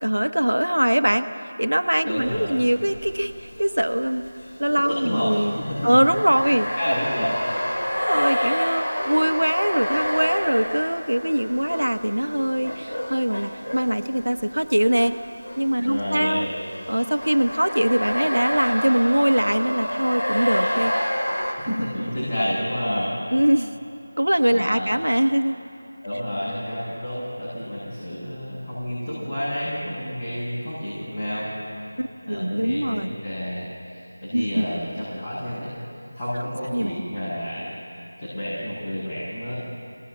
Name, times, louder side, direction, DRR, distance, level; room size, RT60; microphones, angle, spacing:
voice 1, 0.0-1.3 1.6-4.3 4.6-5.6 5.8-6.7 7.9-15.1 15.6-16.5 16.9-20.9 23.3-23.8 24.2-25.6 32.0-33.1 34.3-34.6 36.7-36.9, right 1 dB, 80° right, 9 dB, 1.2 m, -22 dB
voice 2, 2.0-2.6 4.7-5.9 6.8-7.3 15.8-16.5 21.6-23.1 24.5-24.9 26.0-31.5 32.3-33.7 33.9-35.7 36.1-37.7 38.2-39.5, equal, 25° left, -12 dB, 7.4 m, -29 dB
sound 1, 2.2-2.5 2.9-15.1 15.4-21.5, equal, 75° left, 5.1 m, -28 dB
26.0 x 19.0 x 7.9 m, 2.6 s
figure-of-eight pair, 170°, 0 cm